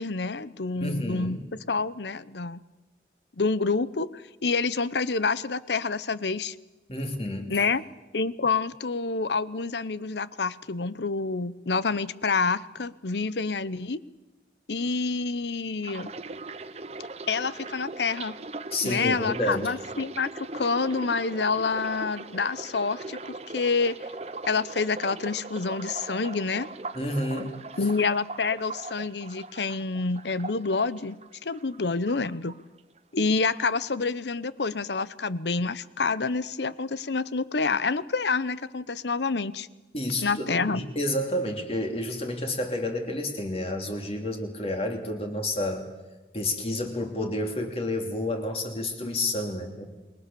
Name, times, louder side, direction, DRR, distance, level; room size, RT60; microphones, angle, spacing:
voice 1, 0.0-2.6 3.4-6.5 7.5-7.8 8.1-14.0 14.7-16.1 17.3-18.4 18.8-24.0 24.5-26.7 27.8-32.6 33.1-39.7 40.2-40.8, left 4 dB, 80° left, 17 dB, 0.9 m, -28 dB
voice 2, 0.8-1.4 6.9-7.6 18.7-19.7 26.9-27.6 39.9-45.9 46.3-49.9, left 1 dB, 35° left, 3 dB, 3.0 m, -30 dB
sound 1, 15.8-31.8 32.1-33.0 33.2-33.6, right 3 dB, 35° right, 0.8 m, -40 dB
28.0 x 21.0 x 7.0 m, 1.1 s
head